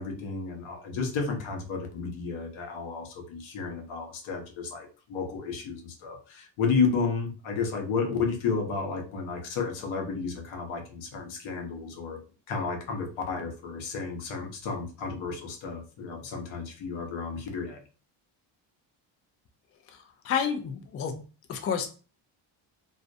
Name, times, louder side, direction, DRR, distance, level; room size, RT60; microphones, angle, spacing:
voice 1, 0.0-12.2 12.5-17.8, left 5 dB, 75° left, 3 dB, 0.9 m, -32 dB
voice 2, 19.9-21.2 21.5-21.9, left 7 dB, 30° left, 5 dB, 0.4 m, -30 dB
2.4 x 2.0 x 2.6 m, 0.35 s
cardioid pair, 95°, 49 cm